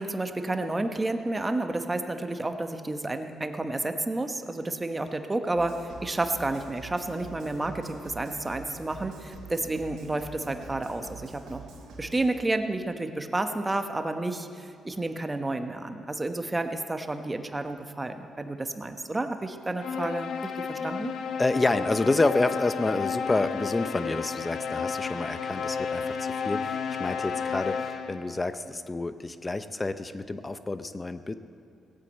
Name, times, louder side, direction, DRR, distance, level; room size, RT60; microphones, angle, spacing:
voice 1, 0.0-11.6 12.0-21.1, right 2 dB, 20° right, 7 dB, 1.1 m, -31 dB
sound 1, 5.5-12.3, right 3 dB, 75° right, 2.9 m, -45 dB
sound 2, 19.8-28.3, left 6 dB, 70° left, 1.1 m, -32 dB
voice 2, 21.4-31.3, left 2 dB, 20° left, 11 dB, 0.6 m, -28 dB
17.5 x 8.5 x 8.2 m, 2.4 s
cardioid pair, 90°, 0 cm